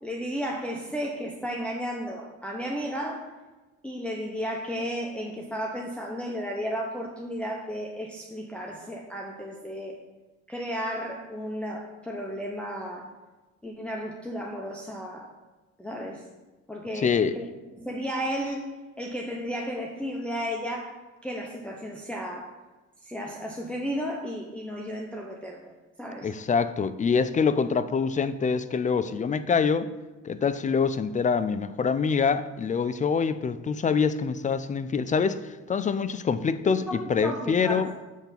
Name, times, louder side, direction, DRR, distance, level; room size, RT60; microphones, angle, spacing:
voice 1, 0.0-3.2 3.8-10.0 10.5-13.1 13.6-15.3 15.8-16.2 16.7-17.4 17.8-18.7 19.0-22.5 23.0-25.6 26.0-26.3 36.6-37.9, equal, 5° left, -2 dB, 0.8 m, -33 dB
voice 2, 17.0-17.3 26.2-29.9 30.2-37.9, left 5 dB, 25° left, 14 dB, 0.4 m, -25 dB
7.2 x 3.4 x 5.8 m, 1.2 s
cardioid pair, 90°, 30 cm